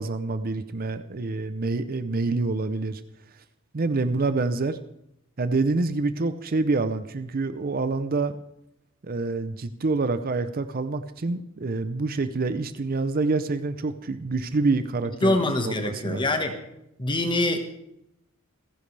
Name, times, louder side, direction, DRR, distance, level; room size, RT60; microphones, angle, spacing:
voice 1, 0.0-3.0 3.7-4.8 5.4-8.4 9.0-15.4 15.6-16.3, right 3 dB, 45° right, 11 dB, 0.6 m, -27 dB
voice 2, 15.2-16.6 17.0-17.6, left 2 dB, 20° left, 5 dB, 1.4 m, -24 dB
27.5 x 10.5 x 3.3 m, 0.81 s
head